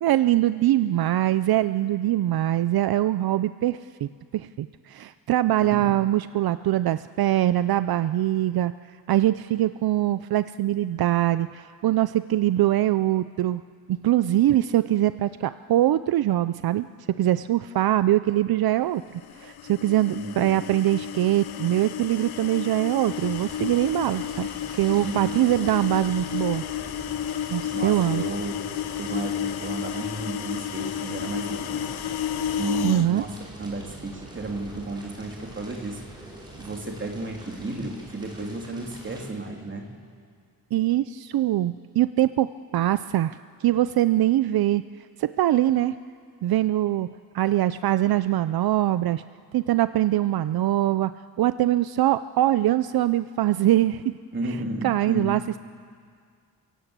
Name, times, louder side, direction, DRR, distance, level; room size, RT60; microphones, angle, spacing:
voice 1, 0.0-8.7 9.1-13.6 13.9-16.9 17.2-24.5 24.8-26.6 27.5-28.2 32.8-33.2 40.7-44.8 45.2-45.9 46.4-47.1 47.3-49.2 49.5-51.1 51.4-54.0 54.5-54.6 54.8-55.6, right 13 dB, 75° right, 13 dB, 0.5 m, -23 dB
sound 1, 19.2-33.1, left 10 dB, 80° left, 0.7 m, -32 dB
voice 2, 20.1-20.6 24.9-25.4 27.6-28.5 29.0-31.9 32.5-33.3 33.6-36.0 36.5-39.9 54.3-55.3, right 2 dB, 30° right, 1 dB, 3.0 m, -33 dB
Fire, 23.1-39.2, right 1 dB, 10° right, 5.5 m, -45 dB
29.0 x 17.0 x 8.1 m, 2.1 s
wide cardioid pair, 150°, 37 cm